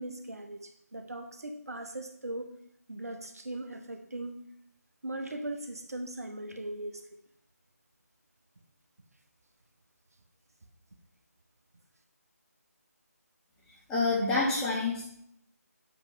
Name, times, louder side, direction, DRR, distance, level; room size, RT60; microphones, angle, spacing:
voice 1, 0.0-2.5 2.9-4.4 5.0-7.0, right 1 dB, 65° right, 5 dB, 0.8 m, -39 dB
voice 2, 13.9-15.0, left 3 dB, 5° left, -9 dB, 1.5 m, -27 dB
8.0 x 3.2 x 5.0 m, 0.71 s
figure-of-eight pair, 155°, 9 cm